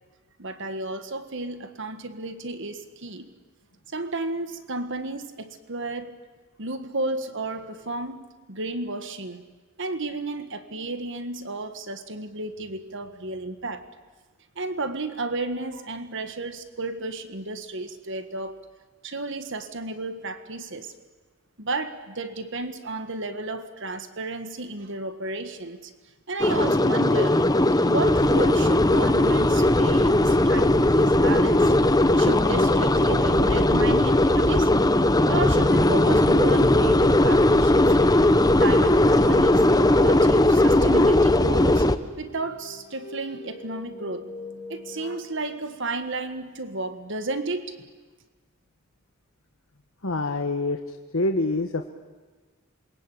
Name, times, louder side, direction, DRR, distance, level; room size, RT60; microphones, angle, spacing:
voice 1, 0.4-3.3 3.9-6.2 6.6-9.4 9.8-13.9 14.6-18.6 19.0-20.9 21.6-25.9 26.3-27.5 27.9-31.7 32.2-34.7 35.3-38.2 38.6-39.7 39.9-41.9 42.2-44.3 44.7-47.9, right 2 dB, 65° right, 9 dB, 1.7 m, -32 dB
sound 1, 26.4-42.0, left 1 dB, 20° left, 1.0 m, -19 dB
sound 2, 40.8-45.2, right 1 dB, 35° left, 3.6 m, -40 dB
voice 2, 50.0-50.8 51.1-51.9, left 2 dB, 85° left, 5 dB, 1.5 m, -25 dB
27.5 x 22.5 x 8.6 m, 1.3 s
head